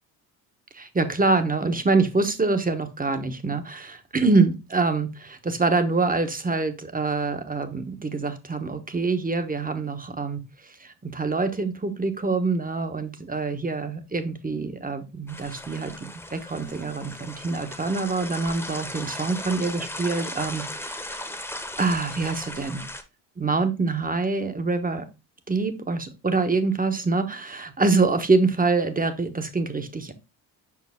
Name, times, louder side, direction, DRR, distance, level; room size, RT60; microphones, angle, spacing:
voice 1, 0.7-21.3 21.8-22.8 23.4-25.1 25.5-30.1, right 3 dB, 20° right, 8 dB, 1.1 m, -25 dB
sound 1, 15.3-23.0, left 1 dB, 5° left, 1.2 m, -37 dB
5.5 x 4.8 x 3.5 m, 0.26 s
supercardioid pair, 60°, 45 cm